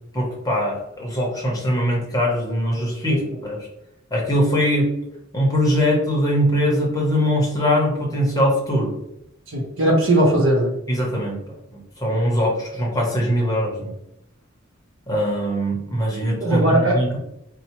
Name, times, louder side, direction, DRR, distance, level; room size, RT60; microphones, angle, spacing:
voice 1, 0.1-3.6 4.1-4.9 5.3-8.9 10.9-11.4 11.7-13.9 15.1-17.2, equal, 15° left, -2 dB, 0.8 m, -21 dB
voice 2, 9.5-10.7 16.4-17.2, right 1 dB, 70° right, 0 dB, 0.9 m, -19 dB
4.2 x 2.1 x 2.9 m, 0.81 s
head